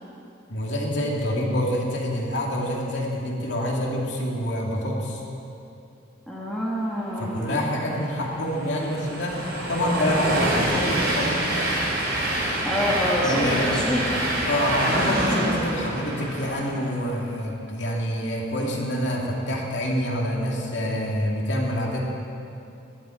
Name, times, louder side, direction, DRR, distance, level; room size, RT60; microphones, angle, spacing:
voice 1, 0.5-5.2 7.2-11.6 13.2-13.7 14.5-22.0, equal, 65° left, -2 dB, 2.4 m, -26 dB
voice 2, 6.3-7.6 12.6-14.3, equal, 5° left, -6 dB, 2.0 m, -27 dB
Train, 7.6-17.0, right 1 dB, 55° right, 3.2 m, -26 dB
19.0 x 12.0 x 4.5 m, 2.7 s
head